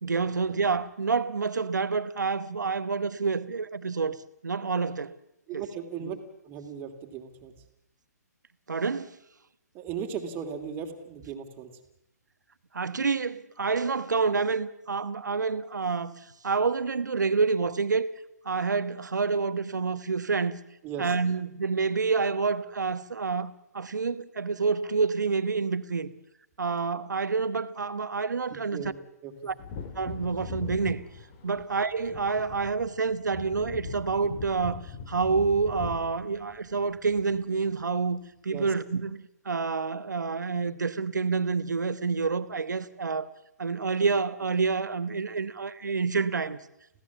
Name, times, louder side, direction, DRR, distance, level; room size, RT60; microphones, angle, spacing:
voice 1, 0.0-5.1 5.5-5.6 6.0-6.2 8.7-9.2 12.7-18.1 18.4-20.6 21.0-26.1 26.6-28.8 29.4-29.5 29.9-31.0 31.4-43.3 43.6-46.6, right 4 dB, 80° right, 1.3 m, -28 dB
voice 2, 5.5-6.2 6.4-7.5 9.7-11.7 20.8-21.1 28.7-29.5 38.5-38.7, right 7 dB, 20° right, 2.8 m, -37 dB
Wind / Thunder, 29.5-37.7 38.0-38.1, left 5 dB, 30° left, 2.7 m, -41 dB
26.5 x 16.5 x 7.3 m
hypercardioid pair, 140°, 10 cm